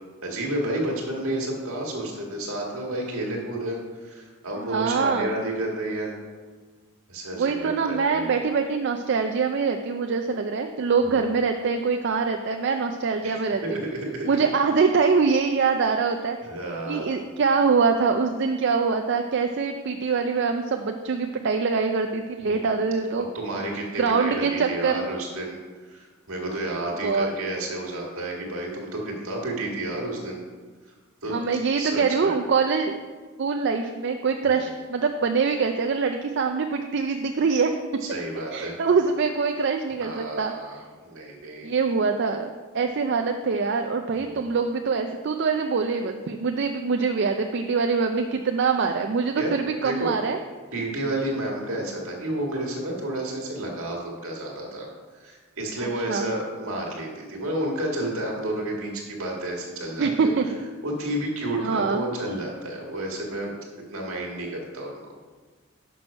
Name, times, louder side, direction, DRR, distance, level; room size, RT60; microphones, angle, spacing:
voice 1, 0.2-6.2 7.1-8.3 11.0-11.2 13.2-14.3 16.4-17.2 22.4-22.9 23.3-30.4 30.8-30.9 31.2-31.3 31.7-32.4 34.4-34.5 38.0-38.7 40.0-41.7 44.2-44.4 49.3-50.1 50.7-54.9 55.1-60.3 60.8-63.6 63.9-65.1, right 1 dB, 70° right, -1 dB, 1.7 m, -31 dB
voice 2, 4.6-5.3 7.3-13.8 14.2-16.4 16.9-23.2 24.0-25.1 27.0-27.3 31.3-33.0 33.4-37.7 38.5-40.5 41.6-50.4 55.8-56.3 60.0-60.5 61.6-62.0, right 5 dB, 50° right, 5 dB, 0.4 m, -24 dB
6.1 x 6.1 x 5.2 m, 1.4 s
head